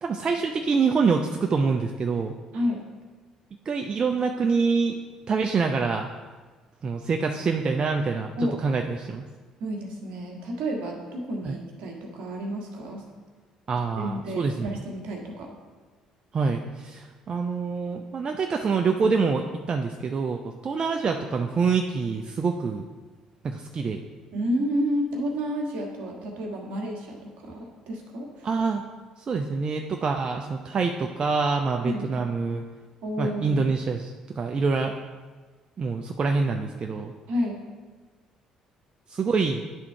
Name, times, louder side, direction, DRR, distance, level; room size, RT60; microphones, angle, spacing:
voice 1, 0.0-2.4 3.7-5.0 5.3-6.1 6.8-9.3 11.4-11.6 13.7-14.8 16.3-22.9 23.4-24.0 28.4-28.8 29.2-32.6 33.2-35.0 35.8-37.1 39.1-39.6, right 4 dB, 40° right, 3 dB, 0.5 m, -26 dB
voice 2, 9.6-13.0 14.0-15.5 24.3-28.5 31.8-32.1 33.0-33.6 37.3-37.6, equal, 70° right, 0 dB, 1.4 m, -30 dB
10.0 x 3.6 x 4.4 m, 1.3 s
hypercardioid pair, 55°, 2 cm